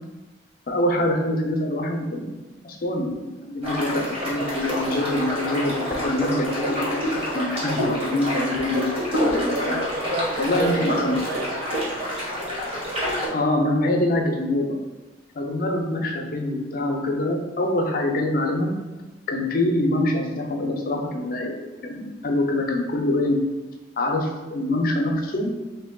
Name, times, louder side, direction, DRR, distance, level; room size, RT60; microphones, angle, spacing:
voice 1, 0.7-2.3 2.6-7.1 7.3-8.9 9.1-9.8 10.4-11.2 13.3-14.8 15.3-18.7 19.3-21.5 21.8-23.4 24.0-25.5, left 1 dB, 50° left, 2 dB, 0.5 m, -24 dB
sound 1, 3.6-13.3, equal, 30° right, 1.1 m, -27 dB
voice 2, 9.5-11.8, right 1 dB, 50° right, 3 dB, 0.4 m, -30 dB
3.0 x 2.6 x 3.7 m, 1.2 s
head